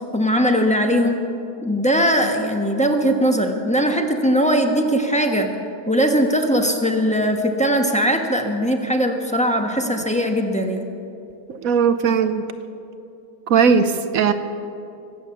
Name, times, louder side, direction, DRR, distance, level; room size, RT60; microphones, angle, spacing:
voice 1, 0.1-1.3 1.6-5.5 5.9-10.8, equal, 5° left, 3 dB, 0.9 m, -20 dB
voice 2, 11.5-12.4 13.5-14.3, right 6 dB, 65° right, 10 dB, 1.0 m, -18 dB
23.0 x 8.8 x 7.0 m, 2.6 s
omnidirectional pair, 1.8 m